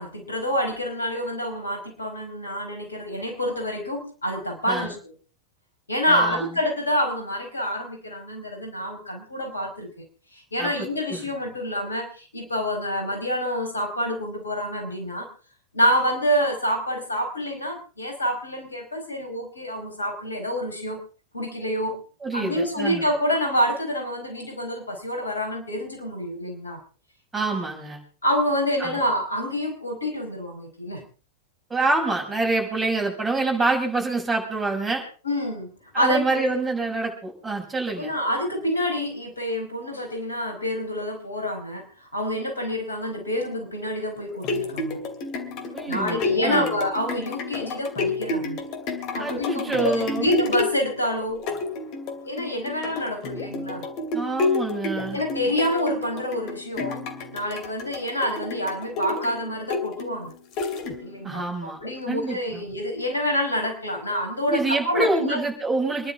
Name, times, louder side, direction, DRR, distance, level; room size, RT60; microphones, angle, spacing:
voice 1, 0.0-5.1 5.9-9.9 10.3-15.3 15.7-21.0 21.3-22.0 22.3-26.8 28.2-31.0 35.2-35.7 35.9-36.4 38.0-45.0 45.9-48.6 49.1-51.4 52.2-53.9 55.1-57.1 57.3-60.3 61.0-65.4, equal, 75° left, 2 dB, 5.1 m, -27 dB
voice 2, 6.1-6.5 10.6-10.7 11.1-11.3 22.2-23.1 27.3-28.0 28.8-29.0 31.7-35.0 35.9-38.1 45.7-46.7 49.2-50.3 54.1-55.2 61.2-61.8 62.1-62.6 64.5-66.1, right 3 dB, 10° right, 0 dB, 6.1 m, -26 dB
sound 1, 44.2-61.3 61.8-61.9, left 3 dB, 40° left, 2.6 m, -30 dB
27.5 x 11.5 x 3.7 m, 0.38 s
figure-of-eight pair, 90°, 0 cm